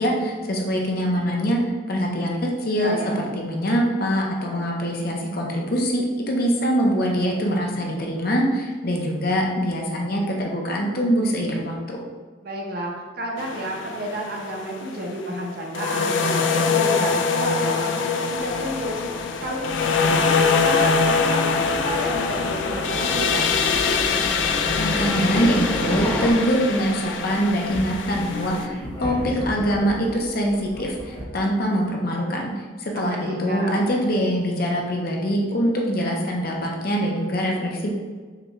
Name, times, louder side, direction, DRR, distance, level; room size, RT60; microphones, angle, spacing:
voice 1, 0.0-1.6 1.9-12.0 24.7-37.9, equal, 55° left, -1 dB, 0.7 m, -24 dB
voice 2, 2.7-3.3 12.4-23.6 32.9-33.8, right 1 dB, 55° right, -1 dB, 0.8 m, -31 dB
sound 1, 13.4-14.8 15.7-28.7, left 5 dB, 85° left, 0.4 m, -23 dB
sound 2, 18.4-26.3, equal, 10° left, 0.5 m, -32 dB
sound 3, 23.6-31.2, equal, 25° left, 1.0 m, -36 dB
5.8 x 2.3 x 3.0 m, 1.5 s
head